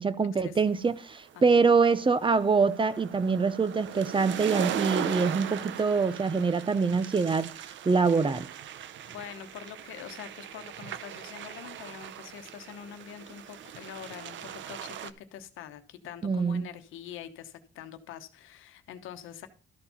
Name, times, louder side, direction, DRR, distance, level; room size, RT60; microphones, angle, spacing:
voice 1, 0.0-7.5 7.8-8.5 16.2-16.6, right 4 dB, 25° right, 0.7 m, -24 dB
sound 1, 0.9-15.1, right 10 dB, 70° right, 0.7 m, -39 dB
voice 2, 9.1-19.5, left 10 dB, 90° left, 1.0 m, -44 dB
13.0 x 4.5 x 5.6 m
cardioid pair, 90°, 20 cm